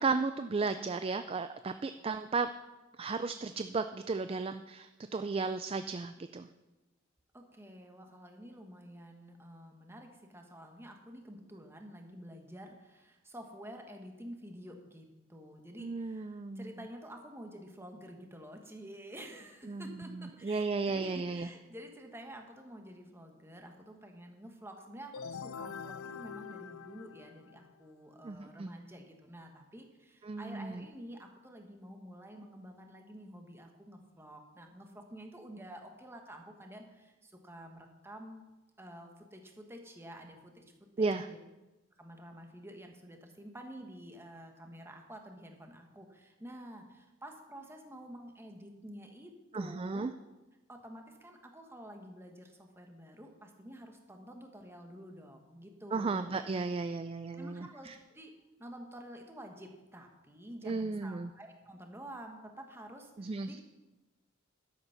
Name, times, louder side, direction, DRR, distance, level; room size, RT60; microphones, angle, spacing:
voice 1, 0.0-2.5 3.0-6.5 15.8-16.7 19.7-21.5 28.2-28.7 30.2-30.9 41.0-41.3 49.5-50.1 55.9-58.0 60.6-61.3 63.2-63.6, right 4 dB, 25° right, 10 dB, 0.3 m, -34 dB
voice 2, 7.3-38.4 38.8-40.6 41.0-41.4 42.0-50.1 50.7-56.4 57.3-58.3 58.6-63.6, equal, 10° right, 3 dB, 1.4 m, -49 dB
sound 1, 25.1-27.8, left 6 dB, 85° left, 0.4 m, -44 dB
12.0 x 8.1 x 5.8 m, 1.1 s
head